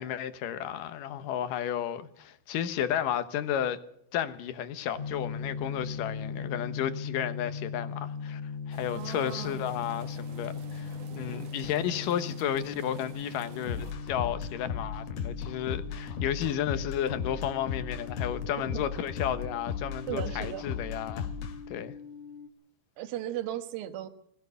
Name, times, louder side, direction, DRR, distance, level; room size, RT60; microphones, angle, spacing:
voice 1, 0.0-3.8 4.1-8.4 8.7-21.3 21.7-21.9, left 10 dB, 70° left, 2.5 m, -32 dB
sound 1, 5.0-22.5, left 5 dB, 35° left, 1.2 m, -40 dB
sound 2, 8.7-13.9, right 7 dB, 55° right, 2.0 m, -49 dB
voice 2, 8.9-9.6 18.7-18.8 20.1-20.7 23.0-24.1, right 12 dB, 75° right, 3.0 m, -36 dB
sound 3, 13.7-21.5, left 6 dB, 90° left, 3.8 m, -35 dB
21.5 x 15.5 x 8.2 m
omnidirectional pair, 4.4 m